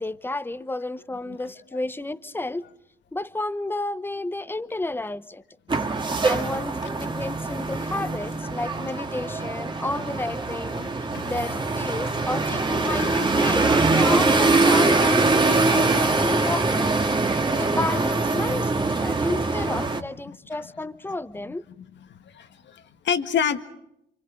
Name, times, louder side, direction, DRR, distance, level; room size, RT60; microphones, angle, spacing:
voice 1, 0.0-2.7 3.1-5.4 6.2-10.9 11.2-17.0 17.5-21.6, left 2 dB, 10° left, 0.9 m, -31 dB
sound 1, 5.7-20.0, right 3 dB, 25° right, 1.9 m, -23 dB
voice 2, 10.8-11.3 12.9-13.3 19.1-19.2 22.1-23.6, left 8 dB, 65° left, 1.8 m, -29 dB
28.5 x 25.5 x 5.0 m
cardioid pair, 90°, 20 cm